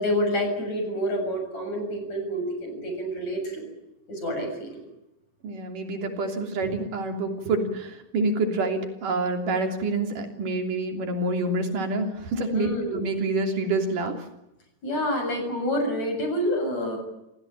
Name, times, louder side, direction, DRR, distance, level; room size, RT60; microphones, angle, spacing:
voice 1, 0.0-3.6 4.1-4.8 12.5-13.0 14.8-17.0, equal, 55° left, 4 dB, 8.4 m, -28 dB
voice 2, 5.4-14.1, right 2 dB, 80° right, 4 dB, 4.7 m, -27 dB
28.5 x 17.5 x 9.0 m, 0.90 s
omnidirectional pair, 3.7 m